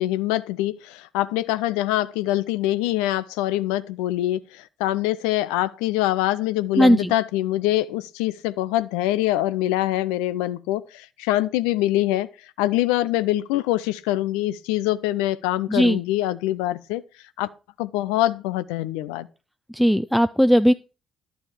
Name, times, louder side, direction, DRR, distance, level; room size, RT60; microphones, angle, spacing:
voice 1, 0.0-12.3 12.6-17.0 17.4-17.5 17.8-19.3, left 15 dB, 70° left, 0.5 m, -24 dB
voice 2, 6.8-7.1 15.7-16.0 19.7-20.7, equal, ahead, 0.5 m, -17 dB
11.5 x 7.0 x 4.9 m
figure-of-eight pair, 45°, 0 cm